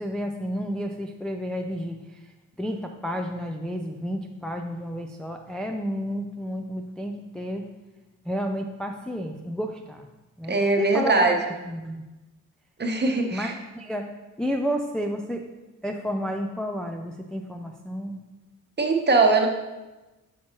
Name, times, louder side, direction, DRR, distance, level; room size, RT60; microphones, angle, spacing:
voice 1, 0.0-2.3 2.6-7.7 8.3-10.1 10.4-12.0 13.3-14.1 14.4-15.4 15.8-18.2, equal, ahead, 2 dB, 0.4 m, -31 dB
voice 2, 10.5-11.3 12.8-13.5 18.8-19.5, right 3 dB, 30° right, 3 dB, 1.0 m, -21 dB
6.2 x 5.5 x 3.0 m, 1.1 s
cardioid pair, 70°, 33 cm